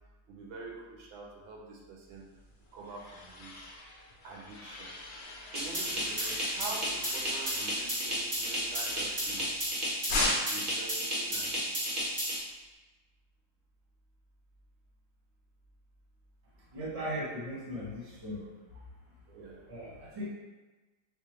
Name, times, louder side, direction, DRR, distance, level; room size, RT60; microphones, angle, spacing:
voice 1, 0.3-2.2 2.7-3.5 4.2-4.9 5.5-9.4 10.1-11.9 19.3-19.6, right 3 dB, 80° right, -2 dB, 1.3 m, -46 dB
sound 1, 2.4-9.7 10.1-10.7, left 2 dB, 65° left, 1.3 m, -38 dB
sound 2, 5.5-12.4, equal, 55° right, 0.5 m, -33 dB
voice 2, 16.7-18.4 19.7-20.2, equal, 25° right, -7 dB, 0.8 m, -38 dB
4.7 x 2.1 x 3.0 m, 1.2 s
omnidirectional pair, 2.2 m